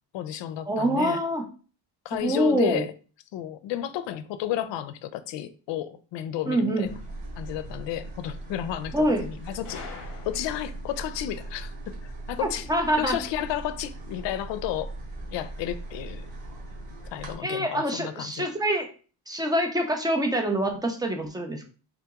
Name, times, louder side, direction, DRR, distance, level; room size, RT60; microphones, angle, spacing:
voice 1, 0.1-1.2 2.0-2.9 3.3-6.9 7.4-9.8 10.2-12.7 13.0-14.9 15.3-16.3 17.1-18.5, left 12 dB, 75° left, 0.5 m, -32 dB
voice 2, 0.7-1.4 2.2-2.8 6.5-6.9 8.9-9.3 12.4-13.2 17.4-18.9 19.3-21.6, right 1 dB, 10° right, 0.3 m, -25 dB
sound 1, 6.8-17.3, right 2 dB, 75° right, 1.9 m, -39 dB
Gunshot gunfire, 9.6-10.9, left 6 dB, 45° left, 0.7 m, -43 dB
3.8 x 2.9 x 3.5 m
cardioid pair, 170°, 44 cm